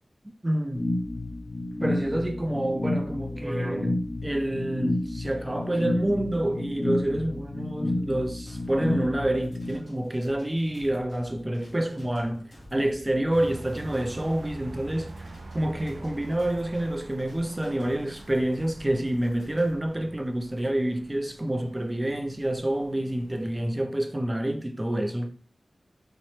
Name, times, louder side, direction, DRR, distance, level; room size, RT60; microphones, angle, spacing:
voice 1, 0.4-1.0 1.8-25.4, right 1 dB, 20° right, 0.5 m, -28 dB
sound 1, 0.7-9.8, left 2 dB, 35° left, 0.4 m, -31 dB
sound 2, 8.5-19.8, equal, 75° left, 1.5 m, -50 dB
sound 3, 13.3-23.7, right 2 dB, 80° right, 0.3 m, -45 dB
4.0 x 2.1 x 3.2 m
wide cardioid pair, 65°, 0 cm